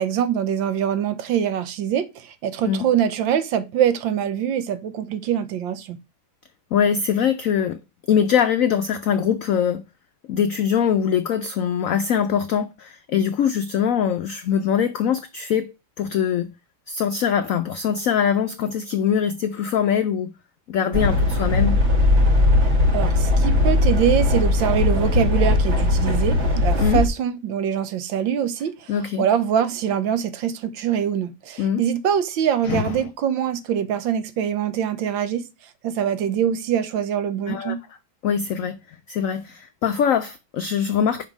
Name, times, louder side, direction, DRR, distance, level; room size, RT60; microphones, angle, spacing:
voice 1, 0.0-6.0 22.9-35.4 35.8-37.8, right 9 dB, 85° right, 1.6 m, -24 dB
voice 2, 6.7-7.8 8.1-9.8 10.3-16.5 16.9-20.3 20.7-21.8 26.8-27.0 28.9-29.3 31.6-31.8 32.7-32.8 37.5-37.7 38.2-38.8 39.1-41.2, left 8 dB, 85° left, 0.7 m, -22 dB
sound 1, 20.9-27.1, left 2 dB, 40° right, 1.5 m, -19 dB
5.4 x 5.3 x 6.1 m
omnidirectional pair, 2.1 m